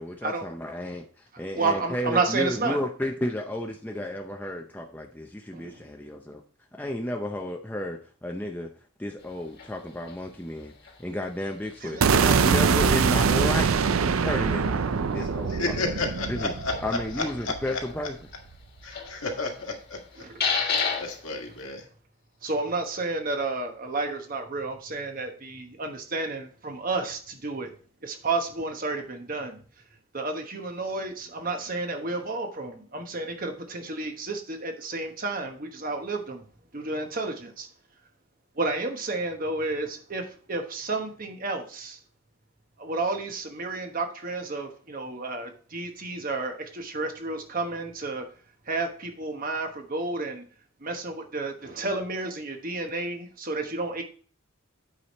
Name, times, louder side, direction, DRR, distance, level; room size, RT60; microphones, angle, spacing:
voice 1, 0.0-6.4 6.8-8.7 9.0-10.7 11.0-13.8 14.2-14.8 15.1-15.9 16.3-16.5 16.8-18.2, left 1 dB, 10° left, 0.5 m, -32 dB
voice 2, 1.3-2.8 5.5-5.8 11.8-12.2 20.1-20.4 20.8-20.9 22.4-27.7 28.0-29.6 30.1-36.4 36.7-37.7 38.6-42.0 42.8-48.3 48.7-50.4 50.8-54.0, right 3 dB, 40° right, 1.1 m, -31 dB
sound 1, 9.2-21.7, left 5 dB, 50° left, 1.6 m, -36 dB
sound 2, 12.0-18.0, right 5 dB, 75° right, 0.5 m, -23 dB
voice 3, 15.5-16.7 18.8-20.0 20.5-21.8, left 3 dB, 75° left, 1.9 m, -32 dB
8.6 x 4.8 x 4.2 m
head